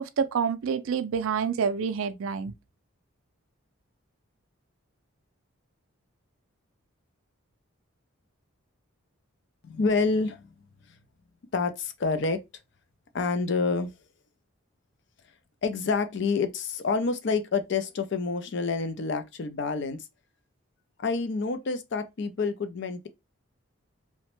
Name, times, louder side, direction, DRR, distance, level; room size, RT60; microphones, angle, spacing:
voice 1, 0.0-2.5, right 6 dB, 70° right, 0.4 m, -28 dB
voice 2, 9.6-10.5 10.9-11.0 11.5-12.4 13.1-13.9 15.6-20.1 21.0-23.1, left 4 dB, 55° left, 0.4 m, -28 dB
2.9 x 2.1 x 2.9 m
head